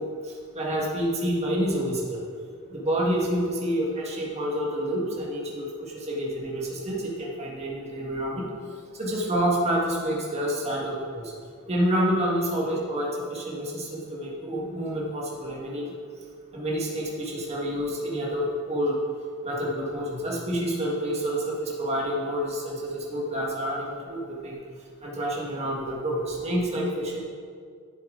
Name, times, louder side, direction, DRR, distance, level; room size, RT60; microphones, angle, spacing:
voice 1, 0.0-2.2 2.7-8.5 9.0-11.3 11.7-15.9 16.5-19.0 19.4-24.6 25.0-27.2, equal, 30° right, -4 dB, 1.7 m, -28 dB
10.5 x 7.4 x 3.8 m, 2.1 s
head